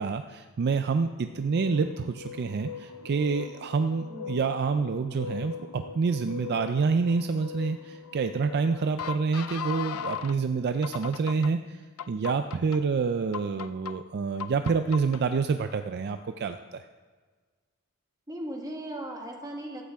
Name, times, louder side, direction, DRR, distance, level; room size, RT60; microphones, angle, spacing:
voice 1, 0.0-16.8, right 5 dB, 50° right, 8 dB, 0.4 m, -28 dB
sound 1, 1.3-10.4 10.8-11.5 12.0-12.8 13.3-13.9 14.4-15.2, left 7 dB, 75° left, 0.5 m, -39 dB
voice 2, 4.1-4.4 18.3-19.8, right 1 dB, 15° right, 1 dB, 1.7 m, -37 dB
15.0 x 13.0 x 3.5 m, 1.5 s
head